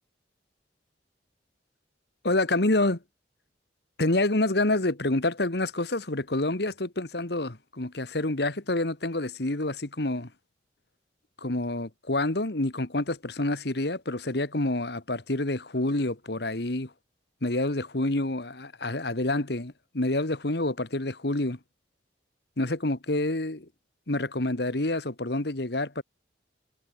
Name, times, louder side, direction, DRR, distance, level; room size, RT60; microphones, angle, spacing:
voice 1, 2.2-3.0 4.0-10.3 11.4-16.9 17.4-21.6 22.6-23.7 24.1-26.0, left 2 dB, 60° left, 1.8 m, -28 dB
head